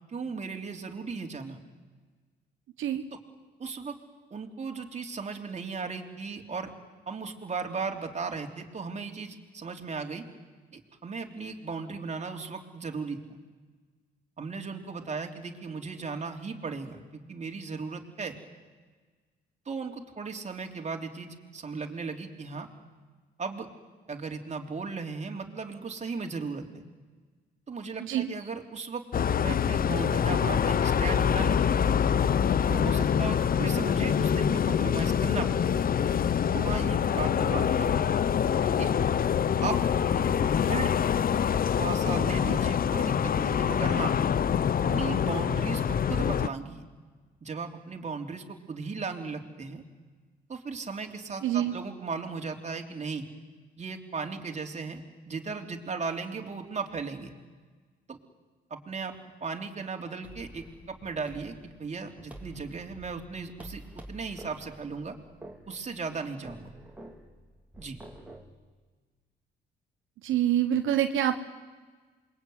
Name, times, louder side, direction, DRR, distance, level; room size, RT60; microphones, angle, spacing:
voice 1, 0.1-1.6 3.6-4.0 4.3-6.7 7.1-10.3 10.7-13.2 14.4-17.0 17.3-18.4 19.7-22.7 23.4-23.7 24.1-26.8 27.7-29.0 29.4-31.8 32.7-35.8 36.5-38.0 38.8-38.9 39.6-39.8 40.2-40.3 40.5-40.9 41.7-44.2 44.8-46.8 47.4-49.8 50.5-53.3 53.8-57.3 58.1-58.2 58.7-59.1 59.4-63.8 64.1-65.2 65.7-66.7 67.8-68.0, right 4 dB, 35° right, 3 dB, 3.5 m, -36 dB
sound 1, 29.1-46.5, left 8 dB, 45° left, 0.8 m, -25 dB
voice 2, 51.4-51.7 70.2-71.4, right 11 dB, 80° right, 7 dB, 1.2 m, -26 dB
sound 2, 60.2-68.5, right 1 dB, 5° right, 3.6 m, -49 dB
27.5 x 22.0 x 9.6 m, 1.4 s
cardioid pair, 90°, 20 cm